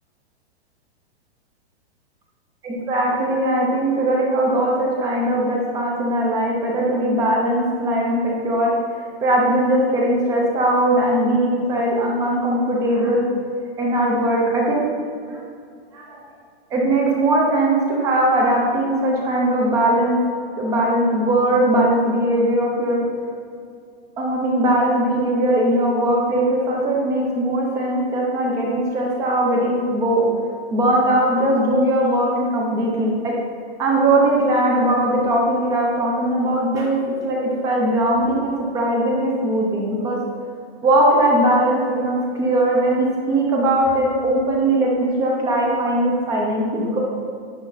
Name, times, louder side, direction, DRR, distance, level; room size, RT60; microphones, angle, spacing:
voice 1, 2.6-8.7 9.2-13.3 13.8-14.9 15.3-15.4 15.9-16.2 16.7-20.2 20.6-23.0 24.2-30.2 30.7-33.3 33.8-40.2 40.8-47.0, right 1 dB, 10° right, -1 dB, 0.7 m, -20 dB
10.5 x 5.5 x 4.0 m, 2.3 s
hypercardioid pair, 175°, 33 cm